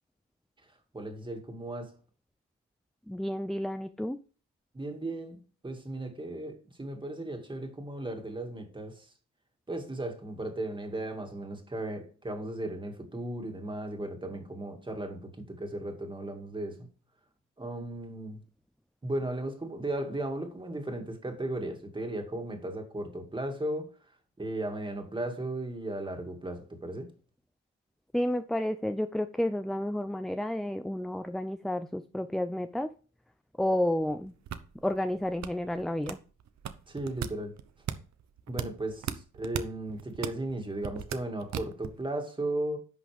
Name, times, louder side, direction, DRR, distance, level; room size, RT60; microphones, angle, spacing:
voice 1, 0.6-1.9 4.7-9.1 9.7-16.9 17.6-18.4 19.0-27.1 36.9-37.5 38.5-42.8, right 1 dB, 15° right, 2.2 m, -36 dB
voice 2, 3.1-4.2 28.1-32.9 33.6-34.3 34.8-36.2, left 1 dB, ahead, 0.4 m, -31 dB
sound 1, 34.0-42.0, right 9 dB, 60° right, 1.0 m, -38 dB
11.0 x 6.2 x 3.4 m
cardioid pair, 120°, 31 cm